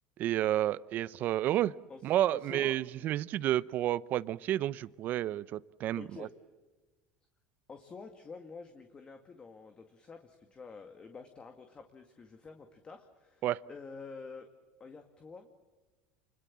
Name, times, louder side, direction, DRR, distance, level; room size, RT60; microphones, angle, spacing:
voice 1, 0.2-1.7 2.0-6.3 13.4-13.6, right 13 dB, 50° right, 19 dB, 0.7 m, -30 dB
voice 2, 1.9-2.8 6.0-6.3 7.7-14.5 14.8-15.5, left 4 dB, 25° left, 5 dB, 2.1 m, -48 dB
29.0 x 21.5 x 7.5 m, 1.3 s
supercardioid pair, 125°, 4 cm